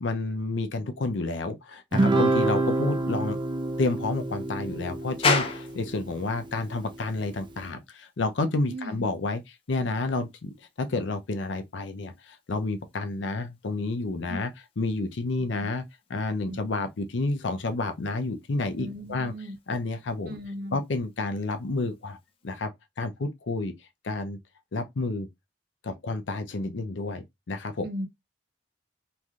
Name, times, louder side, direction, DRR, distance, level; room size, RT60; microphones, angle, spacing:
voice 1, 0.0-3.4 3.8-9.4 9.7-12.1 12.5-14.5 14.8-15.8 16.1-19.3 19.7-20.4 20.7-22.2 22.4-22.7 23.0-23.7 24.0-24.4 24.7-25.3 25.8-27.9, left 3 dB, 75° left, 0.6 m, -30 dB
Guitar, 1.9-6.5, right 2 dB, 25° right, 0.3 m, -27 dB
sound 1, 5.2-22.7, left 3 dB, 30° left, 0.5 m, -38 dB
voice 2, 8.7-9.1 14.3-14.4 16.5-16.6 18.8-19.6 20.3-20.8 27.8-28.1, equal, 55° right, 0.7 m, -36 dB
3.2 x 2.6 x 2.3 m
head